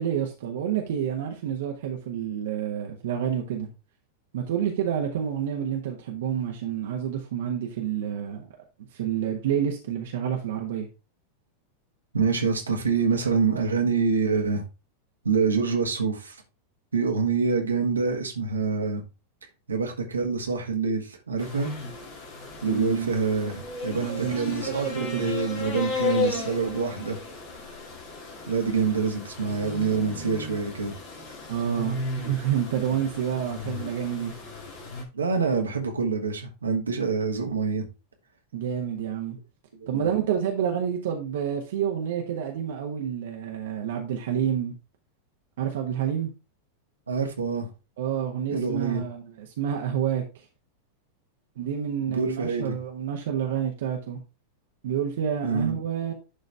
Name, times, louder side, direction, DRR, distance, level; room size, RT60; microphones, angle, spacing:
voice 1, 0.0-3.7 4.3-8.4 8.9-10.9 22.7-23.1 23.9-25.3 31.5-34.3 38.5-39.4 39.9-44.7 45.6-46.3 48.0-50.4 51.6-54.2 54.8-56.1, right 9 dB, 55° right, 1.3 m, -29 dB
voice 2, 12.1-14.6 15.2-16.4 16.9-19.0 19.7-21.7 22.6-27.2 28.5-30.9 35.1-37.9 39.9-40.0 47.1-47.7 48.5-49.0 52.1-52.8 55.4-55.8, right 5 dB, 75° right, 1.6 m, -26 dB
sound 1, 21.4-35.0, left 3 dB, 40° left, 2.3 m, -35 dB
11.5 x 4.0 x 3.4 m
figure-of-eight pair, 90°, 0 cm